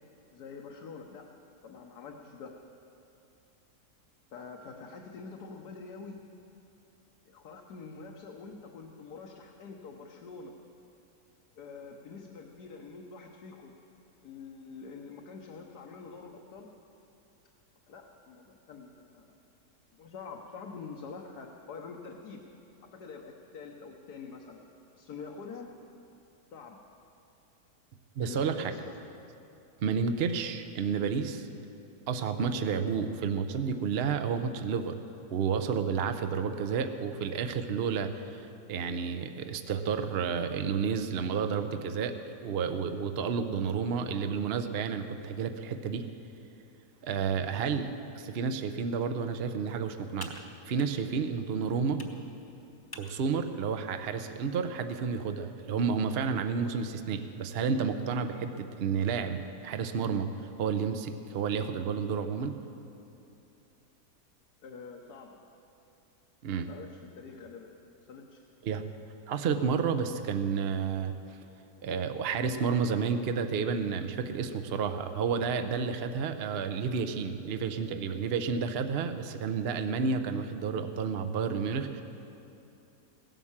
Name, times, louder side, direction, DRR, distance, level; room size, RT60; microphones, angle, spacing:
voice 1, 0.3-1.3 1.6-2.5 4.3-6.3 7.3-10.5 11.6-13.7 14.2-16.7 17.9-19.4 19.9-22.4 22.8-24.6 25.0-25.7 26.5-26.8 28.2-28.9 64.6-65.4 66.5-67.7 68.1-68.4, left 5 dB, 70° left, 1 dB, 1.5 m, -46 dB
voice 2, 28.2-28.7 29.8-31.5 32.1-35.0 35.3-46.1 47.0-50.3 50.7-52.0 52.9-60.3 60.6-62.5 66.4-66.7 68.6-68.8 69.3-71.1 71.8-82.0, right 6 dB, 55° right, 8 dB, 0.7 m, -31 dB
Computer keyboard, 48.8-55.5, left 1 dB, 15° left, 0.9 m, -53 dB
17.0 x 11.0 x 7.3 m, 2.8 s
omnidirectional pair, 1.8 m